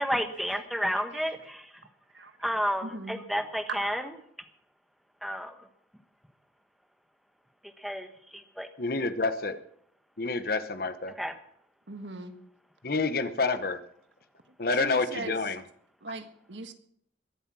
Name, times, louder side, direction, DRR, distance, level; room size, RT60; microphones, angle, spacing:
voice 1, 0.0-1.7 2.4-4.1 5.2-5.5 7.8-8.7 11.2-11.3, equal, ahead, 6 dB, 1.2 m, -31 dB
voice 2, 2.8-3.2 3.7-4.1 11.9-12.4 14.7-15.4 16.0-16.7, right 3 dB, 80° right, 8 dB, 1.5 m, -39 dB
voice 3, 8.8-9.6 10.2-11.1 12.8-13.8 14.6-15.6, left 3 dB, 55° left, 11 dB, 0.9 m, -28 dB
22.0 x 7.9 x 6.2 m, 0.68 s
head